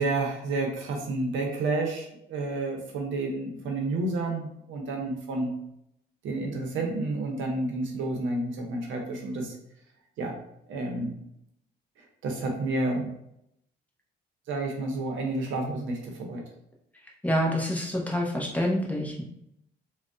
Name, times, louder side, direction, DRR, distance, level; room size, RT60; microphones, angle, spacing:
voice 1, 0.0-5.5 6.2-9.5 10.2-10.4 10.7-11.1 12.2-13.1 14.5-16.4, right 2 dB, 80° right, 2 dB, 0.8 m, -30 dB
voice 2, 17.2-19.2, equal, 5° left, -2 dB, 0.8 m, -27 dB
3.3 x 2.2 x 2.6 m, 0.76 s
cardioid pair, 90°, 20 cm